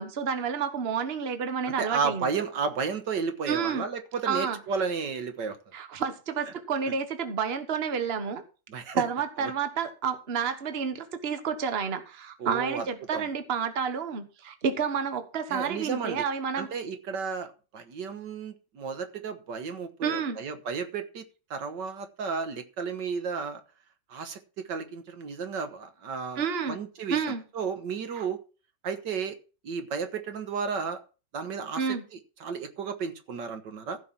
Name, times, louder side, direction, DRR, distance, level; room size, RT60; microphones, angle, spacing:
voice 1, 0.0-2.3 3.5-3.8 4.3-4.6 5.7-8.4 8.9-16.7 20.0-20.4 26.4-26.8 27.1-27.4 28.1-28.2 31.7-32.0, right 6 dB, 35° right, 9 dB, 1.3 m, -30 dB
voice 2, 1.8-5.6 8.7-9.0 9.4-9.5 12.4-12.8 13.1-13.3 15.5-16.2 16.6-21.2 21.5-23.6 24.1-27.2 27.5-28.4 28.8-29.4 29.6-31.0 31.3-34.0, right 5 dB, 70° right, 8 dB, 1.9 m, -33 dB
15.5 x 5.9 x 5.7 m, 0.34 s
omnidirectional pair, 2.0 m